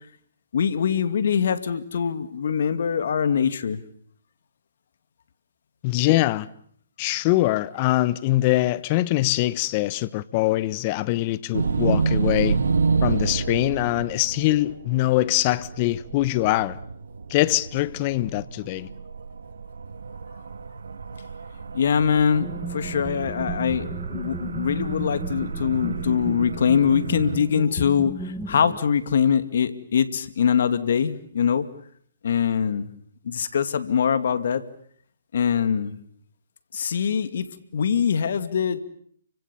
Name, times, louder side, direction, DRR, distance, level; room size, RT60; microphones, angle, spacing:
voice 1, 0.5-3.8 21.7-31.7 32.2-32.9 33.2-34.6 35.3-36.0 36.7-37.5 37.7-38.8, left 7 dB, 60° left, 2.4 m, -23 dB
voice 2, 5.8-6.5 7.0-12.6 13.0-16.8 17.3-18.9, left 17 dB, 35° left, 1.2 m, -23 dB
sound 1, 11.5-27.4, right 4 dB, 75° right, 2.3 m, -29 dB
sound 2, 22.3-28.8, right 2 dB, ahead, 1.6 m, -35 dB
30.0 x 25.0 x 7.2 m
hypercardioid pair, 140°, 0 cm